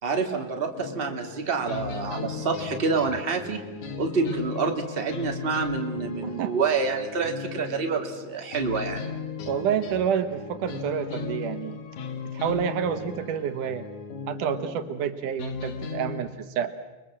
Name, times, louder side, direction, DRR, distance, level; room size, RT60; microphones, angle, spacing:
voice 1, 0.0-3.6 4.0-9.1, right 4 dB, 20° right, 3 dB, 2.2 m, -27 dB
sound 1, 0.7-16.2, left 6 dB, 70° left, 3.4 m, -37 dB
voice 2, 6.2-6.5 9.5-11.8 12.3-13.8 14.3-16.7, right 8 dB, 80° right, 9 dB, 2.9 m, -28 dB
30.0 x 22.5 x 7.6 m, 1.1 s
omnidirectional pair, 3.6 m